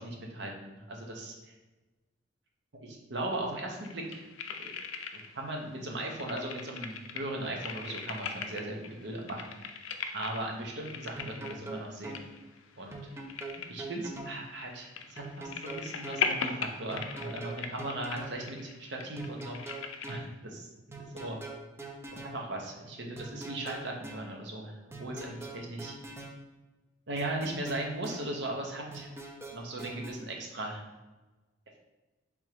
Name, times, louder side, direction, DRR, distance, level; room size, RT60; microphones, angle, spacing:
voice 1, 0.0-1.3 2.8-4.3 4.6-4.7 5.3-9.7 10.1-12.3 12.8-13.0 13.7-19.8 20.1-20.7 21.1-21.4 22.3-26.0 27.1-29.1 29.5-30.8, right 1 dB, 60° right, 1 dB, 0.8 m, -38 dB
sound 1, 3.8-5.5 5.8-20.2, left 6 dB, 90° left, 0.4 m, -39 dB
sound 2, 11.2-12.2 12.9-14.4 15.2-16.2 16.9-18.4 19.2-20.3 20.9-22.4 23.2-24.3 24.9-26.4 27.2-28.3 28.9-30.1, right 2 dB, 15° right, 0.5 m, -43 dB
3.5 x 2.9 x 4.6 m, 1.2 s
head